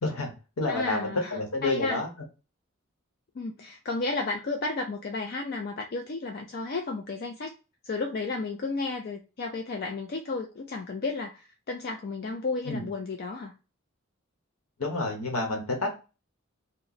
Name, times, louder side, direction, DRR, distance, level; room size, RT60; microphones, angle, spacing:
voice 1, 0.0-2.1 12.7-12.9 14.8-15.9, left 2 dB, 90° left, 1.0 m, -29 dB
voice 2, 0.7-2.0 3.4-7.6 7.8-13.5, left 3 dB, 45° left, 0.4 m, -33 dB
2.9 x 2.1 x 3.8 m
head